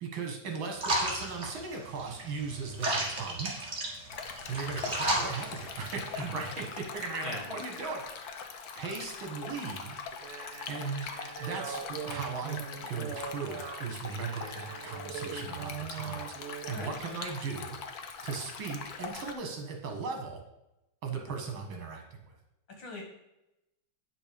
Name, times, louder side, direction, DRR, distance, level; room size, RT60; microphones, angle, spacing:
voice 1, 0.0-3.5 4.5-8.3 8.8-10.0 10.7-11.1 11.4-12.6 12.9-17.8 18.2-20.4 21.0-22.0, right 5 dB, 70° right, 3 dB, 2.3 m, -37 dB
sound 1, 0.8-6.2, right 1 dB, 35° right, 1.9 m, -34 dB
Stream, 4.1-19.3, left 5 dB, 55° left, 1.2 m, -42 dB
sound 2, 10.1-16.8, right 8 dB, 85° right, 1.7 m, -41 dB
voice 2, 22.7-23.0, left 2 dB, 75° left, 0 dB, 3.0 m, -40 dB
9.0 x 6.2 x 5.2 m, 0.91 s
omnidirectional pair, 2.3 m